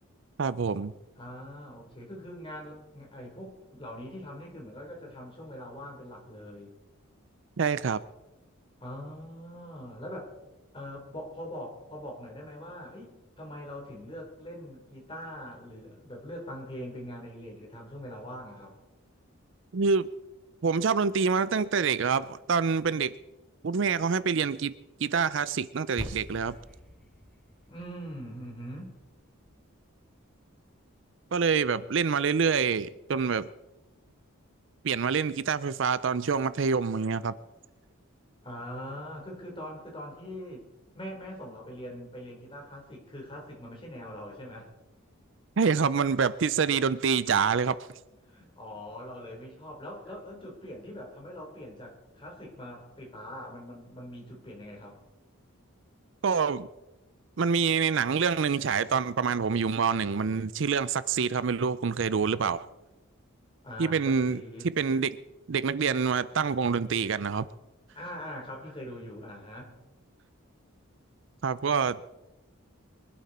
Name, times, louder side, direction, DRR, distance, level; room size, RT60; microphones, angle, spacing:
voice 1, 0.4-0.9 7.6-8.0 19.7-20.1 20.6-23.1 23.6-24.7 25.0-26.6 31.3-33.5 34.8-37.3 45.6-47.8 56.2-56.7 57.4-62.7 63.8-64.4 64.8-65.2 65.5-67.5 71.4-72.0, right 5 dB, 60° right, 16 dB, 0.5 m, -26 dB
voice 2, 1.1-6.7 8.8-10.3 10.7-18.7 27.7-29.0 38.4-40.7 40.9-44.7 48.2-55.0 63.6-64.7 67.9-69.7, equal, 25° left, -1 dB, 4.0 m, -42 dB
sound 1, 26.0-30.5, equal, ahead, 2.4 m, -45 dB
23.5 x 12.0 x 4.3 m, 1.0 s
head